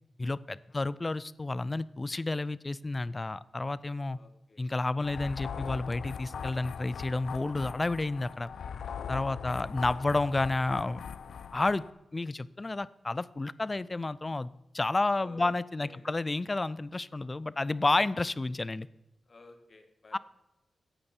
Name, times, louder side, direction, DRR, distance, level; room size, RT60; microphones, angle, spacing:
voice 1, 0.2-4.2 4.6-8.5 9.1-11.0 11.5-11.8 12.1-18.9 20.1-20.2, left 2 dB, 25° left, 19 dB, 0.4 m, -31 dB
voice 2, 4.1-4.6 9.2-10.2 15.2-16.2 19.3-20.2, left 2 dB, 40° left, 6 dB, 1.7 m, -54 dB
sound 1, 5.0-11.9, left 7 dB, 85° left, 0.7 m, -40 dB
16.0 x 8.8 x 4.4 m, 0.96 s
wide cardioid pair, 150°, 0 cm